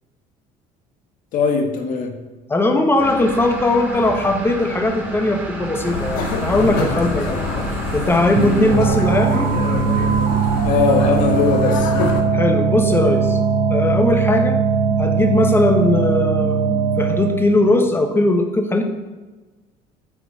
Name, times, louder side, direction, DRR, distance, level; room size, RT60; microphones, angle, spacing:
voice 1, 1.3-2.1 10.6-11.9, left 5 dB, 60° left, 5 dB, 1.6 m, -19 dB
voice 2, 2.5-7.4 7.9-9.5 12.3-13.4 13.7-14.6 15.0-16.6 17.0-18.8, left 2 dB, 15° left, 6 dB, 1.2 m, -19 dB
sound 1, 3.0-8.8, right 2 dB, 10° right, 2.1 m, -30 dB
sound 2, 5.8-12.2, left 4 dB, 85° left, 1.7 m, -26 dB
sound 3, 8.4-17.6, right 6 dB, 65° right, 0.9 m, -19 dB
11.0 x 4.9 x 7.2 m, 1.2 s
cardioid pair, 140°, 15 cm